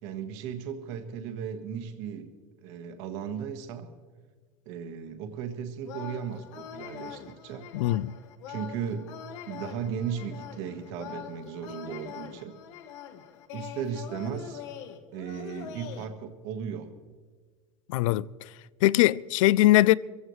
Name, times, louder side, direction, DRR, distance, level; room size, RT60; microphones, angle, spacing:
voice 1, 0.0-2.3 2.6-3.9 4.6-7.7 8.5-9.1 9.5-12.5 13.5-14.6 15.1-16.9, right 7 dB, 60° right, 1.5 m, -36 dB
sound 1, 5.8-16.0, left 9 dB, 65° left, 1.3 m, -43 dB
voice 2, 7.7-8.1 17.9-18.3 18.8-20.0, left 16 dB, 85° left, 0.4 m, -21 dB
24.0 x 15.5 x 3.2 m
supercardioid pair, 160°, 16 cm